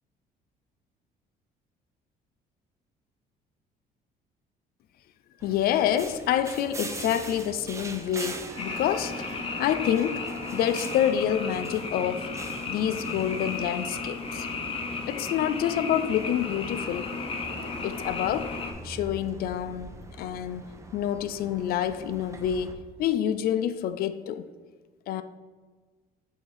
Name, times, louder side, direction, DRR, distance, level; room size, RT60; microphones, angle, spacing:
voice 1, 5.4-9.3 9.6-10.2 10.5-12.3 12.7-14.5 15.1-17.2 17.8-18.5 18.8-24.4 25.1-25.2, left 10 dB, 65° left, 0.4 m, -27 dB
sound 1, 5.4-22.7, right 2 dB, 15° right, 0.6 m, -42 dB
sound 2, 8.4-13.2, right 2 dB, 45° right, 1.0 m, -45 dB
Frog, 8.6-18.7, left 4 dB, 35° left, 0.7 m, -35 dB
7.2 x 2.8 x 4.8 m
cardioid pair, 110°, 17 cm